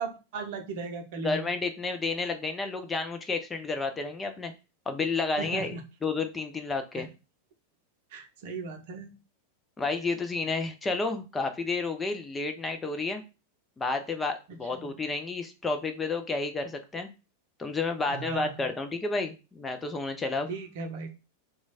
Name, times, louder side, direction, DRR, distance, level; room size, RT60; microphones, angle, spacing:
voice 1, 0.0-1.4 5.4-5.8 7.0-7.1 8.1-9.2 14.5-14.9 18.1-18.7 20.5-21.1, right 4 dB, 50° right, 5 dB, 0.7 m, -37 dB
voice 2, 1.2-4.5 4.9-5.7 6.0-7.1 9.8-13.2 13.8-17.1 17.6-20.5, left 3 dB, 15° left, 6 dB, 0.5 m, -31 dB
3.0 x 2.3 x 4.1 m, 0.30 s
figure-of-eight pair, 90°, 0 cm